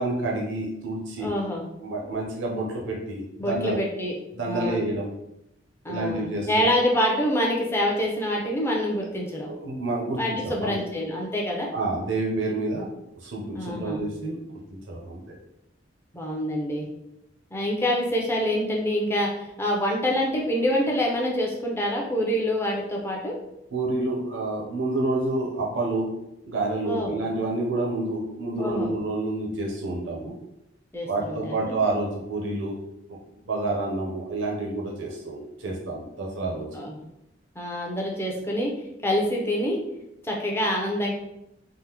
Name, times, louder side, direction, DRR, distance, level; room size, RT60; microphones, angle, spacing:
voice 1, 0.0-1.3 1.8-3.8 4.3-5.1 5.9-6.7 9.4-10.7 11.7-12.9 13.2-14.4 14.7-15.2 23.7-26.1 26.5-30.3 31.0-32.8 33.4-36.7, right 2 dB, 80° right, -2 dB, 0.6 m, -28 dB
voice 2, 1.2-1.7 2.0-2.2 3.4-4.1 4.5-4.8 5.8-9.5 10.2-11.7 13.5-14.0 16.1-16.9 17.5-23.4 26.8-27.1 28.6-28.9 30.9-31.7 36.7-37.0 37.6-38.7 39.0-39.8 40.2-41.1, equal, 15° left, -1 dB, 0.5 m, -26 dB
3.5 x 2.0 x 2.9 m, 0.86 s
head